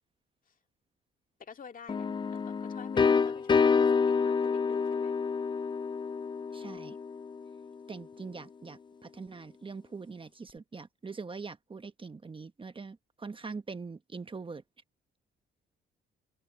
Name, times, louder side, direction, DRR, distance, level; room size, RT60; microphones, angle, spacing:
voice 1, 1.4-5.2, left 6 dB, 45° left, 2.1 m, -49 dB
sound 1, 1.9-7.6, left 5 dB, 25° left, 0.4 m, -28 dB
voice 2, 6.5-7.0 7.9-14.6, right 4 dB, 25° right, 1.1 m, -43 dB
open air
cardioid pair, 90°, 20 cm